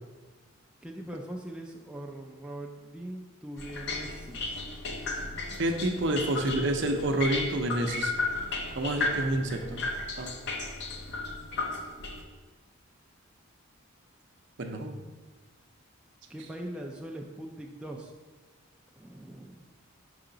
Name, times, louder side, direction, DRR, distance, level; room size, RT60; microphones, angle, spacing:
voice 1, 0.8-4.6 16.3-18.1 19.0-19.7, right 1 dB, 5° right, 0 dB, 0.3 m, -41 dB
sound 1, 3.6-12.2, left 3 dB, 55° left, 0.7 m, -34 dB
voice 2, 5.6-8.1 8.7-9.8 10.2-10.3 14.6-15.0, right 1 dB, 55° right, 4 dB, 0.6 m, -28 dB
5.5 x 4.9 x 3.8 m, 1.3 s
head